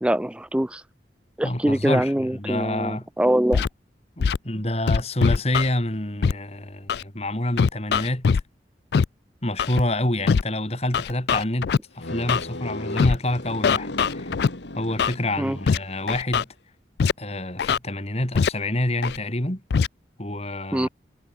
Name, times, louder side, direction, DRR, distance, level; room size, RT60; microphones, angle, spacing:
voice 1, 0.0-0.8 1.4-3.7 15.4-15.6 20.7-20.9, right 1 dB, 5° right, 0.4 m, -23 dB
voice 2, 1.4-3.1 4.2-8.3 9.4-14.3 14.7-16.5 17.2-19.6 20.2-20.9, left 1 dB, 35° left, 3.8 m, -27 dB
Scratching (performance technique), 3.5-3.7 4.2-4.4 4.9-5.7 6.2-6.3 6.9-7.0 7.6-8.4 8.9-9.0 9.6-9.8 10.3-10.4 10.9-11.8 12.3-12.4 13.0-13.2 13.6-14.5 15.0-15.1 15.7-15.8 16.1-16.4 17.0-17.1 17.6-17.8 18.3-18.5 19.0-19.2 19.7-19.9, left 6 dB, 65° left, 0.4 m, -21 dB
sound 1, 12.0-16.0, left 2 dB, 80° left, 2.4 m, -36 dB
head